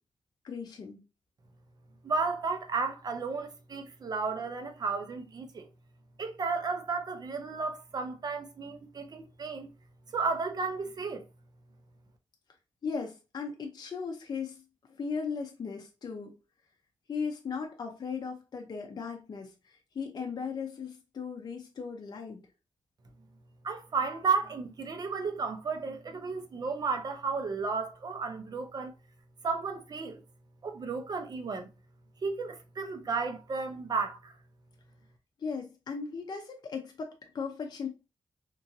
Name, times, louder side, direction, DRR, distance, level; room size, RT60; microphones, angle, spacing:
voice 1, 0.4-1.0 12.8-14.6 14.9-16.3 17.1-22.4 35.4-37.9, left 5 dB, 45° left, 0.5 m, -37 dB
voice 2, 2.0-5.7 6.2-9.7 10.1-11.2 23.6-28.9 29.4-30.2 30.6-31.7 32.2-34.3, right 4 dB, 45° right, 0.5 m, -33 dB
3.0 x 2.5 x 2.6 m
wide cardioid pair, 120°, 9 cm